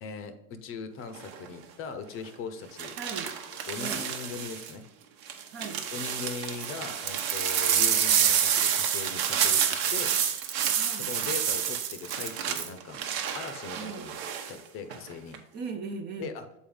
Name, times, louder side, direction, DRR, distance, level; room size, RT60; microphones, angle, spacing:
voice 1, 0.0-2.9 3.7-4.8 5.9-10.2 11.0-13.0 13.3-14.2 14.5-15.4 16.2-16.4, left 5 dB, 35° left, 9 dB, 0.7 m, -40 dB
sound 1, 1.1-1.5 2.8-4.7 5.3-14.5 14.9-15.4, right 8 dB, 60° right, 1.1 m, -28 dB
voice 2, 3.0-3.3 3.8-4.1 5.5-5.9 10.8-11.1 13.7-14.1 15.5-16.3, right 5 dB, 25° right, 6 dB, 0.5 m, -38 dB
7.1 x 4.2 x 3.7 m, 0.90 s
supercardioid pair, 130°, 40 cm